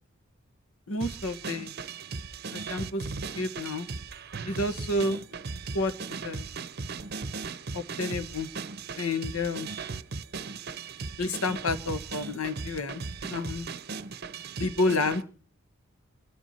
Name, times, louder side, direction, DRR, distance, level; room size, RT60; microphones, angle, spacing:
voice 1, 0.9-1.7 2.5-3.0 3.4-3.9 4.5-5.2 5.7-6.4 7.7-8.5 9.0-9.7 11.2-13.0 13.3-13.7 14.6-15.2, left 2 dB, 90° left, 9 dB, 1.5 m, -30 dB
sound 1, 1.0-15.2, right 4 dB, 45° right, 0.7 m, -38 dB
28.0 x 10.5 x 4.4 m, 0.38 s
head